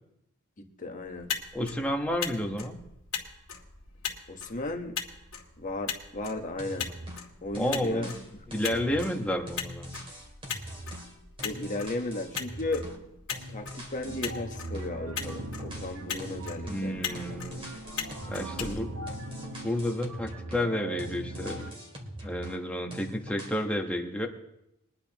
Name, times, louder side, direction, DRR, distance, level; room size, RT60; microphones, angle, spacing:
voice 1, 0.6-1.4 4.3-5.0 5.6-7.0 7.4-8.1 8.7-8.8 11.4-12.9 13.5-17.0 17.3-17.4 18.3-18.8, left 2 dB, 40° left, 3 dB, 1.2 m, -35 dB
Motor vehicle (road), 1.0-19.6, left 7 dB, 70° left, 2.2 m, -40 dB
voice 2, 1.5-2.8 7.6-10.0 16.7-17.6 18.3-19.0 19.6-21.8 22.2-24.3, left 1 dB, 5° left, 2 dB, 1.2 m, -31 dB
sound 1, 6.6-7.3 7.5-13.1 13.3-14.9 15.2-16.9 17.1-20.7 21.0-22.6 22.9-23.6, equal, 25° right, 2.6 m, -43 dB
sound 2, 14.0-21.7, right 2 dB, 70° right, 1.0 m, -40 dB
22.5 x 10.5 x 3.0 m, 0.84 s
head